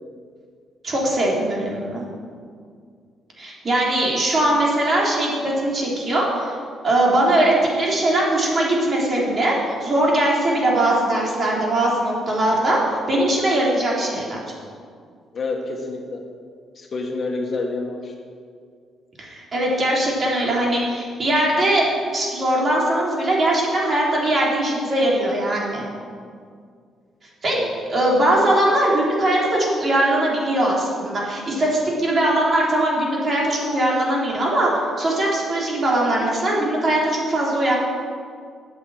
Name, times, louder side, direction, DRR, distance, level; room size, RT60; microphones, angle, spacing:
voice 1, 0.8-2.0 3.4-6.6 6.8-12.8 13.1-14.4 19.2-21.8 22.1-25.8 27.4-27.6 27.9-37.7, right 1 dB, 40° right, -4 dB, 3.5 m, -20 dB
voice 2, 15.3-16.2 16.7-18.1 27.5-27.7, left 3 dB, 45° left, 2 dB, 1.6 m, -28 dB
8.6 x 8.3 x 7.8 m, 2.1 s
cardioid pair, 90°, 0 cm